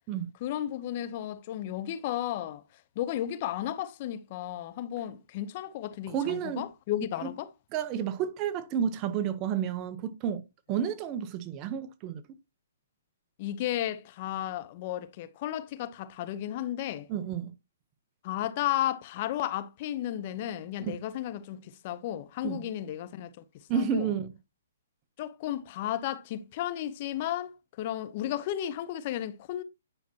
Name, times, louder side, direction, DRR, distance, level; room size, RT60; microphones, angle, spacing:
voice 1, 0.4-2.6 3.0-7.5 13.4-17.1 18.2-23.4 23.7-24.1 25.2-29.6, left 12 dB, 40° left, 0.8 m, -33 dB
voice 2, 6.1-6.6 7.2-7.3 7.7-10.4 10.7-12.2 17.1-17.5 20.8-21.0 22.4-22.7 23.7-24.3, right 8 dB, 30° right, 0.8 m, -31 dB
9.9 x 5.8 x 2.8 m
hypercardioid pair, 145°, 0 cm